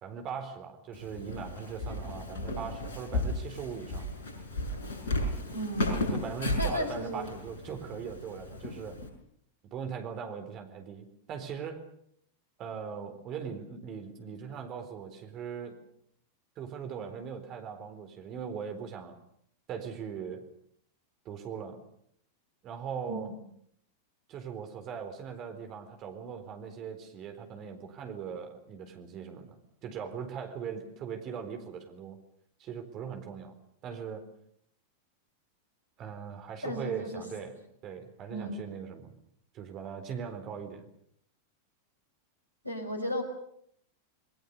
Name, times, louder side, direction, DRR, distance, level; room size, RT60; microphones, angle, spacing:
voice 1, 0.0-4.1 6.1-9.0 9.7-11.8 12.6-15.8 16.6-19.2 19.7-20.4 21.2-21.8 22.6-23.3 24.3-32.2 32.6-33.5 33.8-34.3 36.0-37.5 37.8-39.1 39.5-40.9, right 7 dB, 35° right, 6 dB, 4.1 m, -40 dB
Walk footsteps, 0.9-9.1, left 1 dB, 60° left, 6.1 m, -34 dB
voice 2, 5.5-6.0 6.6-7.3 23.1-23.2 36.6-37.2 38.3-38.6 42.6-43.2, equal, 90° right, 6 dB, 5.1 m, -34 dB
28.5 x 20.5 x 6.8 m, 0.70 s
figure-of-eight pair, 90°, 0 cm